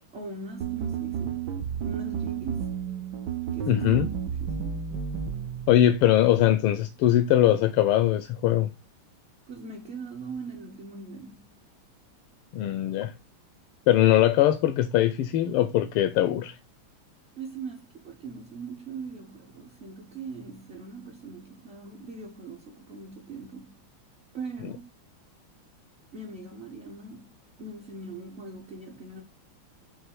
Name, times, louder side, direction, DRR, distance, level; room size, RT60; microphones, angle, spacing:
voice 1, 0.1-1.5 1.8-2.8 3.5-3.9 4.3-4.9 9.5-11.5 17.4-23.8 24.3-24.9 26.1-29.2, right 3 dB, 55° right, 0.7 m, -41 dB
sound 1, 0.6-5.9, right 8 dB, 70° right, 1.0 m, -32 dB
voice 2, 3.7-4.1 5.7-8.7 12.5-13.1 13.9-16.6, left 12 dB, 85° left, 1.5 m, -21 dB
6.6 x 3.1 x 4.6 m
omnidirectional pair, 2.4 m